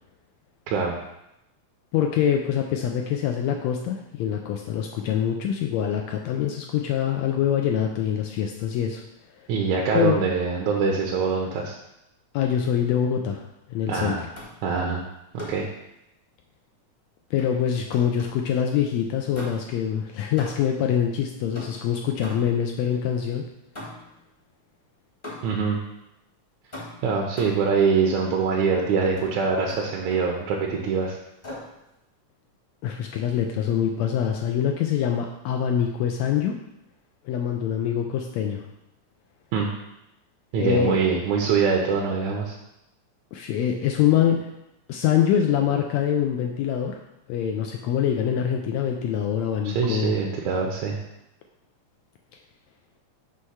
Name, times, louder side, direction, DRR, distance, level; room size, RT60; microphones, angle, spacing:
voice 1, 1.9-9.0 9.9-10.2 12.3-13.4 13.7-14.1 17.3-23.5 32.8-36.5 37.2-38.6 40.6-41.2 43.3-44.5 44.9-47.0 47.3-50.1, left 9 dB, 80° left, 2 dB, 1.6 m, -24 dB
voice 2, 9.5-11.7 13.9-14.2 14.6-15.0 15.3-15.7 25.4-25.8 27.0-31.2 39.5-39.7 40.5-42.6 49.7-51.0, right 5 dB, 75° right, -1 dB, 1.9 m, -24 dB
sound 1, 14.3-14.7 15.4-15.7 17.4-18.5 19.3-19.8 20.4-20.8 21.5-22.7 23.7-24.2 25.2-25.7 26.7-27.7 29.2-29.3 29.7-30.3 31.4-31.8, left 1 dB, 25° left, 0.9 m, -40 dB
6.4 x 3.2 x 5.6 m, 0.87 s
omnidirectional pair, 3.4 m